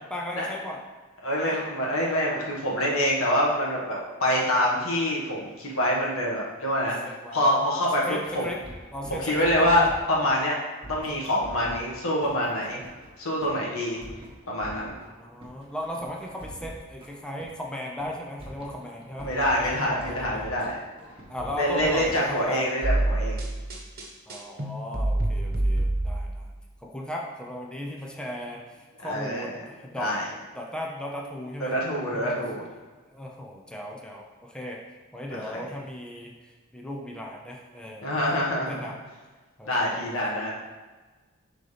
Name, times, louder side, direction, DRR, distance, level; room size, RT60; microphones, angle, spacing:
voice 1, 0.1-0.8 1.5-1.6 7.0-7.5 8.0-8.6 8.9-9.9 15.2-19.3 19.7-20.4 21.3-22.7 24.3-26.5 26.8-30.1 30.5-31.8 32.1-32.3 33.1-34.8 35.1-39.0 39.6-39.9 40.2-40.3, left 1 dB, 5° left, -1 dB, 0.7 m, -36 dB
voice 2, 1.2-7.0 7.3-8.4 9.1-10.6 10.9-12.8 13.2-14.0 14.5-14.9 19.2-20.8 21.6-23.4 29.0-29.5 30.0-30.2 31.6-32.6 35.3-35.6 38.0-38.8 39.7-40.5, equal, 75° left, -3 dB, 1.6 m, -26 dB
sound 1, 8.0-10.3 10.8-11.8 12.2-13.1 13.4-13.5 13.8-15.1 15.4-17.5 17.8-18.1 18.4-20.7 21.0-22.5 22.8-23.0, right 1 dB, 25° right, 1.4 m, -43 dB
sound 2, 22.8-26.5, right 1 dB, 50° right, 1.3 m, -26 dB
11.0 x 3.9 x 3.4 m, 1.3 s
head